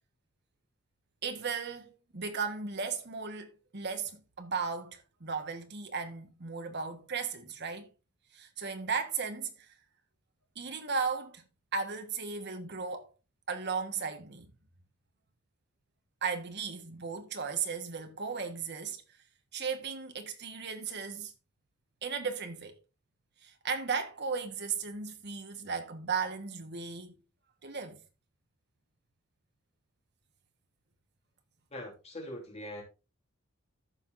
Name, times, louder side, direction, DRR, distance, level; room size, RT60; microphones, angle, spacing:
voice 1, 1.2-7.9 8.3-9.7 10.5-11.4 11.7-13.1 13.5-14.5 16.2-19.0 19.5-21.3 22.0-22.8 23.4-27.1 27.6-28.0, right 5 dB, 55° right, 1.4 m, -36 dB
voice 2, 31.7-32.8, left 1 dB, 30° left, 3.2 m, -42 dB
14.5 x 5.8 x 2.6 m
head